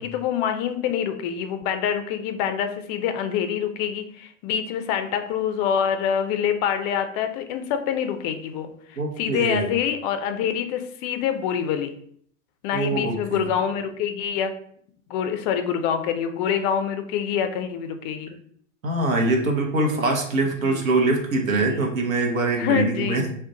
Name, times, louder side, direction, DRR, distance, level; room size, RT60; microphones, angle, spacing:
voice 1, 0.0-11.9 12.6-14.5 15.1-18.4 20.6-20.8 21.5-21.8 22.6-23.2, left 8 dB, 35° left, 8 dB, 0.4 m, -26 dB
voice 2, 9.0-9.7 12.7-13.5 18.8-23.3, right 2 dB, 85° right, 2 dB, 0.8 m, -23 dB
2.4 x 2.2 x 3.8 m, 0.63 s
hypercardioid pair, 90°, 40 cm